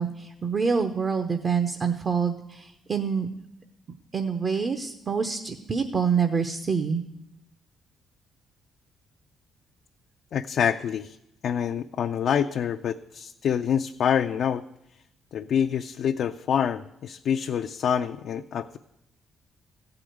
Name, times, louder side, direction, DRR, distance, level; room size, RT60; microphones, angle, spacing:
voice 1, 0.0-3.3 4.1-7.0, right 6 dB, 45° right, 6 dB, 0.8 m, -26 dB
voice 2, 10.3-11.2 11.4-14.6 15.3-18.8, left 8 dB, 65° left, 5 dB, 0.4 m, -26 dB
14.5 x 5.0 x 9.1 m, 0.85 s
cardioid pair, 90°, 0 cm